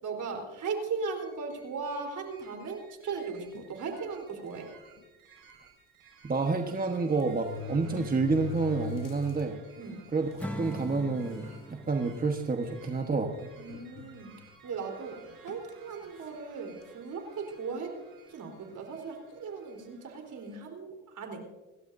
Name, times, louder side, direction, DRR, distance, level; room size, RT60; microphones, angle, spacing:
voice 1, 0.0-4.7 9.8-10.0 13.6-14.4 14.6-17.9 18.3-21.4, right 4 dB, 55° right, 3 dB, 4.1 m, -37 dB
sound 1, 1.2-20.6, right 6 dB, 80° right, 6.0 m, -57 dB
sound 2, 3.6-3.8 4.6-4.7 5.0-5.1 6.4-6.5 7.2-9.4 9.9-10.0 10.8-10.9 11.3-11.6 12.2-12.4 13.7-14.5 15.5-15.7, left 5 dB, 65° left, 1.1 m, -40 dB
voice 2, 6.2-9.6 10.1-10.3 10.6-13.3, right 4 dB, 25° right, 3 dB, 1.3 m, -29 dB
Acoustic guitar / Strum, 10.4-13.7, left 1 dB, 5° left, 1.3 m, -42 dB
29.0 x 12.5 x 2.7 m, 1.2 s
cardioid pair, 85°, 35 cm